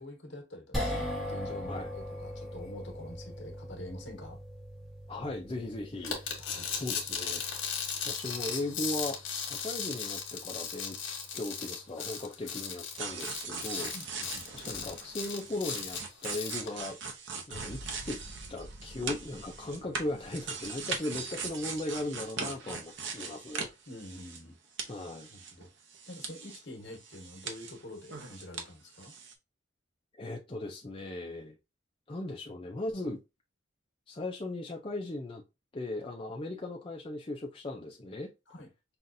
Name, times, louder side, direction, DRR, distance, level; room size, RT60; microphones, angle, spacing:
voice 1, 0.0-4.4 6.4-6.7 13.9-14.4 23.9-24.6 25.3-25.7 26.1-29.1 38.5-38.7, left 1 dB, 60° left, 1.4 m, -46 dB
sound 1, 0.7-13.0, left 1 dB, ahead, 1.1 m, -42 dB
voice 2, 5.1-6.2 6.7-7.4 8.0-11.0 11.3-13.9 14.5-17.0 17.5-18.2 18.5-23.7 24.9-25.3 30.2-31.6 32.1-33.2 34.1-35.4 35.7-38.3, left 2 dB, 25° left, 0.5 m, -37 dB
sound 2, 6.0-16.7, left 6 dB, 80° left, 1.3 m, -37 dB
sound 3, 12.9-24.5 24.8-26.6 26.9-28.7 28.9-29.3, right 5 dB, 65° right, 0.8 m, -40 dB
5.6 x 2.5 x 2.6 m
head